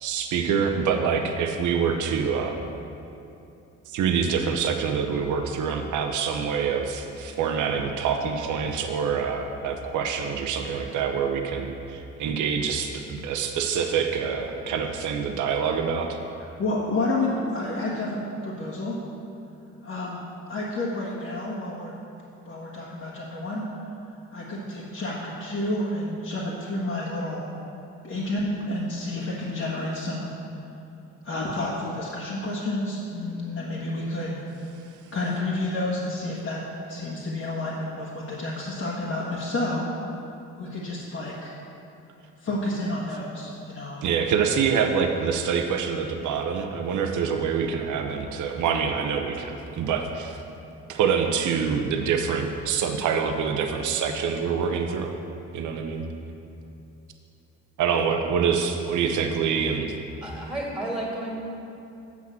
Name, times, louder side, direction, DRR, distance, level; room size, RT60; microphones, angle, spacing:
voice 1, 0.0-2.7 3.9-16.1 44.0-50.4 50.9-55.1 55.5-56.0 57.8-59.9, right 6 dB, 75° right, 4 dB, 0.8 m, -26 dB
voice 2, 16.4-19.0 19.8-20.2 20.5-21.9 22.4-23.6 24.3-27.4 28.0-30.3 31.2-34.4 35.1-36.6 36.9-39.9 40.6-41.5 42.4-44.2, left 2 dB, 50° left, -6 dB, 1.6 m, -30 dB
voice 3, 60.2-61.4, right 1 dB, 5° right, -3 dB, 2.3 m, -32 dB
7.3 x 6.0 x 7.5 m, 2.8 s
cardioid pair, 90°, 30 cm